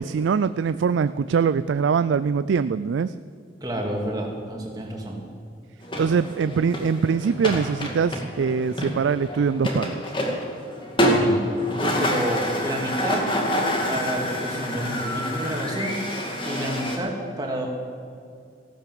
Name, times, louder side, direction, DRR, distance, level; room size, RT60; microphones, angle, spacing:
voice 1, 0.0-3.1 6.0-10.1, right 6 dB, 90° right, 14 dB, 0.4 m, -23 dB
voice 2, 3.6-5.2 11.0-11.5 11.8-13.2 13.9-16.0 16.4-17.7, right 1 dB, 20° right, 0 dB, 2.5 m, -29 dB
sound 1, 5.8-17.0, equal, 25° left, 2.2 m, -27 dB
15.5 x 12.0 x 7.7 m, 2.4 s
head